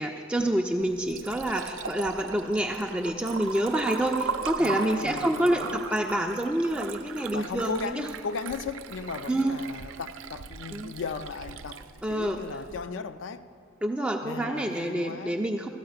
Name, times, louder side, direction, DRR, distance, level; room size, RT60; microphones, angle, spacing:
voice 1, 0.0-8.1 9.3-9.6 10.7-10.9 12.0-12.4 13.8-15.7, right 1 dB, 5° right, 0.3 m, -27 dB
Liquid, 0.8-12.8, right 5 dB, 80° right, 0.4 m, -38 dB
voice 2, 4.6-5.8 7.3-11.8 12.1-13.4 14.2-15.4, left 5 dB, 75° left, 0.4 m, -36 dB
13.5 x 4.8 x 7.8 m
head